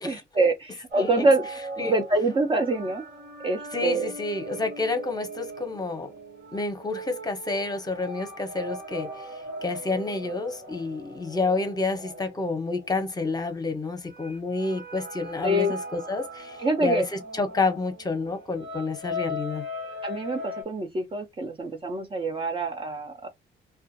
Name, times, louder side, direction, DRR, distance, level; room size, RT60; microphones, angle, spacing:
voice 1, 0.0-1.5 1.8-3.0 3.4-4.1 15.4-15.7 16.6-17.1 20.0-23.3, right 2 dB, 25° right, 0.5 m, -25 dB
sound 1, 0.9-13.4 14.1-20.6, equal, 65° right, 1.1 m, -39 dB
voice 2, 3.7-6.1 6.5-9.3 9.6-19.6, left 3 dB, 20° left, 0.8 m, -29 dB
2.4 x 2.2 x 2.6 m
cardioid pair, 90°, 20 cm